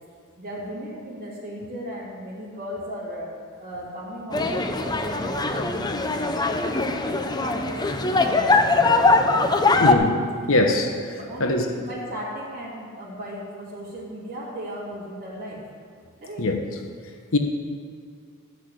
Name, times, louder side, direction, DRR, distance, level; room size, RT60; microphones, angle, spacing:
voice 1, 0.4-3.3 3.6-6.2 6.6-9.9 11.1-15.6 16.2-16.5, equal, 45° right, -10 dB, 2.8 m, -36 dB
sound 1, 4.3-9.9, left 3 dB, 20° left, 0.7 m, -21 dB
voice 2, 9.8-10.1 10.5-11.1 11.4-11.7 16.4-16.6 17.3-17.4, left 1 dB, 65° left, 4 dB, 1.1 m, -21 dB
13.0 x 6.4 x 8.4 m, 2.3 s
head